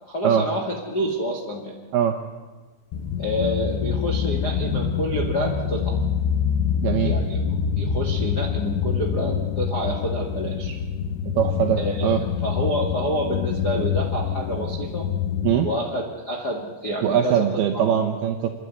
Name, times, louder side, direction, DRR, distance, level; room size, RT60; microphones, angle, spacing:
voice 1, 0.0-1.7 3.2-6.0 7.0-7.4 7.7-10.8 11.7-12.2 12.4-15.1 15.6-17.5 17.7-18.0, equal, 45° left, -1 dB, 1.2 m, -28 dB
sound 1, 2.9-15.6, left 7 dB, 75° left, 2.8 m, -26 dB
voice 2, 6.8-7.2 11.3-12.2 15.4-15.7 17.0-18.5, right 9 dB, 75° right, 5 dB, 2.3 m, -21 dB
28.5 x 11.5 x 9.6 m, 1.3 s
omnidirectional pair, 5.9 m